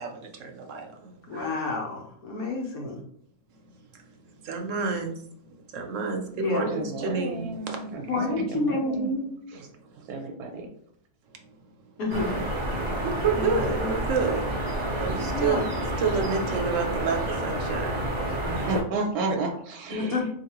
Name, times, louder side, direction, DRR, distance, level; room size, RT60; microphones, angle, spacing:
voice 1, 0.0-1.4 3.5-3.6 3.9-5.2 5.7-7.8 8.1-8.2 9.5-9.7 9.9-10.0 13.0-14.5 15.0-15.6 16.0-18.7, right 5 dB, 65° right, 3 dB, 0.9 m, -30 dB
voice 2, 1.3-3.0 6.4-6.8 8.1-9.3 12.0-12.4 13.3-13.9 15.3-15.7 19.9-20.3, left 2 dB, 75° left, -1 dB, 1.3 m, -29 dB
voice 3, 6.7-9.2 10.1-10.7 18.5-20.2, right 2 dB, 90° right, 2 dB, 1.1 m, -32 dB
sound 1, 12.1-18.8, right 1 dB, 35° right, 0.5 m, -29 dB
4.1 x 2.9 x 2.9 m, 0.67 s
omnidirectional pair, 1.6 m